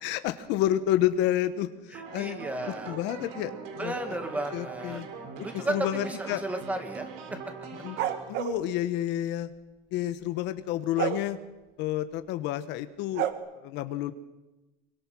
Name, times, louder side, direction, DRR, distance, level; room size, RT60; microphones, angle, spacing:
voice 1, 0.0-1.7 2.1-2.4 2.9-3.5 3.8-4.2 4.5-5.1 5.5-6.4 7.8-8.0 8.3-9.5 9.9-11.4 11.8-13.3 13.6-14.1, left 13 dB, 65° left, 11 dB, 1.3 m, -29 dB
voice 2, 1.9-3.0 3.8-5.0 5.4-7.1, right 1 dB, 5° right, 6 dB, 2.3 m, -33 dB
sound 1, 1.9-8.2, right 5 dB, 80° right, 5.9 m, -41 dB
sound 2, 8.0-8.6 11.0-11.2 13.1-13.3, right 12 dB, 60° right, 1.8 m, -28 dB
25.0 x 24.0 x 6.3 m, 1.1 s
cardioid pair, 170°, 20 cm